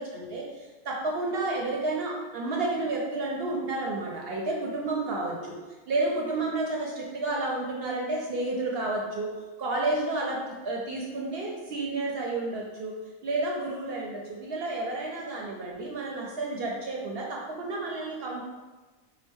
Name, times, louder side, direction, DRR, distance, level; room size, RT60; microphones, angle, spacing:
voice 1, 0.0-5.5 5.9-9.3 9.6-10.4 10.6-12.9 13.2-18.4, right 2 dB, 60° right, -2 dB, 0.7 m, -31 dB
4.7 x 2.1 x 3.4 m, 1.3 s
omnidirectional pair, 1.4 m